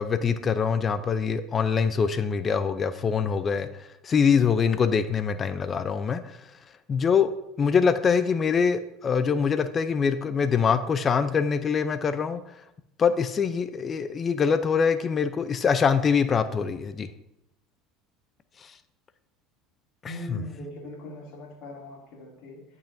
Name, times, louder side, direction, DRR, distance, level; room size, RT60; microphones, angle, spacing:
voice 1, 0.0-6.4 6.9-7.3 7.6-12.4 13.0-17.1 18.6-18.7 20.0-20.4, left 6 dB, 35° left, 11 dB, 0.5 m, -24 dB
voice 2, 20.0-22.6, left 1 dB, 65° left, -3 dB, 2.7 m, -40 dB
11.5 x 5.6 x 2.7 m, 0.84 s
hypercardioid pair, 85°, 0 cm